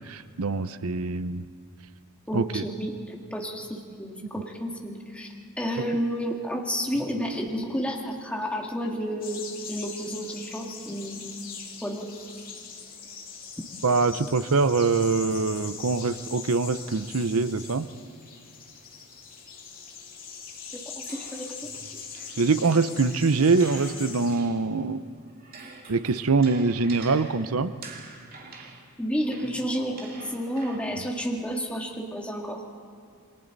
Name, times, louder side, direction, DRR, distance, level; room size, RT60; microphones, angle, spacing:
voice 1, 0.1-1.4 2.3-2.6 5.8-5.9 13.8-17.9 22.4-25.0 25.9-27.7 31.0-31.1, right 4 dB, 75° right, 13 dB, 0.7 m, -24 dB
voice 2, 2.3-11.4 11.8-12.1 20.7-21.7 29.0-32.6, equal, 5° left, 0 dB, 1.9 m, -31 dB
sound 1, 9.2-24.4, left 6 dB, 40° left, 2.6 m, -42 dB
sound 2, 21.1-24.9 25.3-31.1, right 3 dB, 45° right, 2.4 m, -47 dB
28.5 x 22.5 x 4.1 m, 2.3 s
head